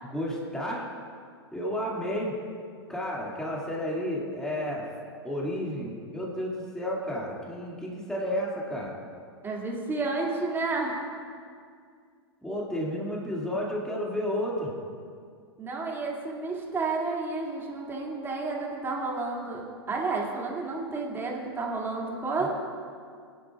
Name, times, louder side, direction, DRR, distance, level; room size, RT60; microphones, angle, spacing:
voice 1, 0.1-0.9 1.5-2.4 2.9-4.9 5.2-9.0 12.4-14.7 22.4-22.5, equal, 5° left, -4 dB, 2.3 m, -31 dB
voice 2, 9.4-11.1 15.6-22.5, right 3 dB, 15° right, -2 dB, 2.5 m, -31 dB
22.5 x 11.0 x 2.5 m, 2.2 s
hypercardioid pair, 105°, 14 cm